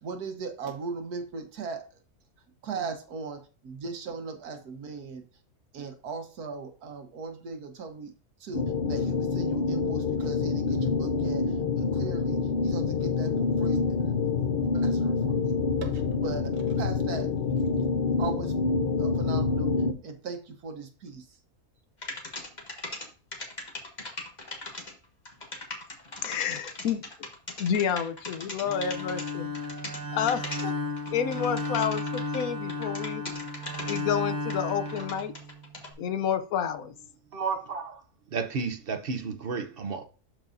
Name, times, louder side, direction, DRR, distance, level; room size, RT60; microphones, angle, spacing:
voice 1, 0.0-1.8 2.6-5.2 5.7-8.1 8.4-14.0 14.4-14.5 14.7-17.3 17.6-17.7 18.2-18.5 19.0-19.7 20.0-21.4, right 4 dB, 85° right, 1.6 m, -38 dB
sound 1, 8.5-19.9, left 4 dB, 55° left, 0.6 m, -27 dB
sound 2, 22.0-23.1 23.3-32.4 32.7-34.0 34.5-35.9, left 2 dB, 30° left, 1.5 m, -39 dB
voice 2, 26.2-27.0 27.6-29.5 30.1-30.7 31.1-33.2 33.9-35.3 36.0-36.9, left 8 dB, 70° left, 1.1 m, -29 dB
Bowed string instrument, 28.6-35.8, left 2 dB, 15° right, 1.0 m, -34 dB
voice 3, 37.3-38.0 38.3-40.0, right 5 dB, 50° right, 0.8 m, -32 dB
12.0 x 4.7 x 2.6 m
omnidirectional pair, 1.6 m